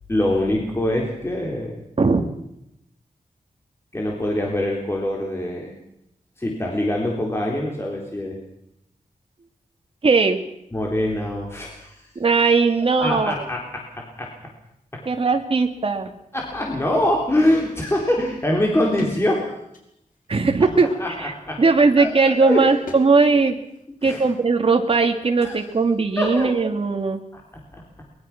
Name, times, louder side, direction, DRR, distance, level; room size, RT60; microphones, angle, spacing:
voice 1, 0.1-1.8 3.9-5.7 6.4-8.4 10.7-12.0 13.0-14.3 15.0-15.1 16.3-19.6 21.0-21.6 22.0-22.8 24.0-24.2 25.4-25.6 26.2-26.5 27.3-27.4, left 1 dB, 20° left, -1 dB, 3.6 m, -24 dB
voice 2, 10.0-10.4 12.2-13.4 15.1-16.1 20.3-20.9 21.2-21.3 21.6-23.6 24.0-27.2, right 4 dB, 40° right, 5 dB, 2.4 m, -18 dB
sound 1, 19.0-19.2 19.6-20.3 20.8-21.1 22.9-23.1 23.4-23.8 24.9-25.1, left 2 dB, 75° left, 5.2 m, -40 dB
23.0 x 21.5 x 6.0 m, 0.79 s
wide cardioid pair, 150°, 14 cm